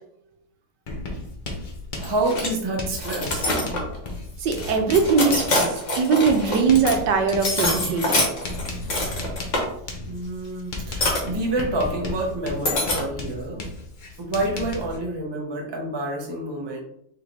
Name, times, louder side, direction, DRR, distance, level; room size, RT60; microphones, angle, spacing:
Writing, 0.9-15.0, left 2 dB, 70° left, 0.4 m, -35 dB
sound 1, 2.0-2.5 3.0-4.0 4.6-6.9 7.3-9.6 11.0-11.2 12.6-13.1, left 2 dB, 45° left, 1.3 m, -25 dB
voice 1, 2.0-3.5 10.1-13.7 14.2-16.8, right 1 dB, 30° right, -1 dB, 0.4 m, -28 dB
voice 2, 4.4-8.3, right 5 dB, 75° right, 5 dB, 1.3 m, -21 dB
3.9 x 3.2 x 3.9 m, 0.72 s
omnidirectional pair, 2.0 m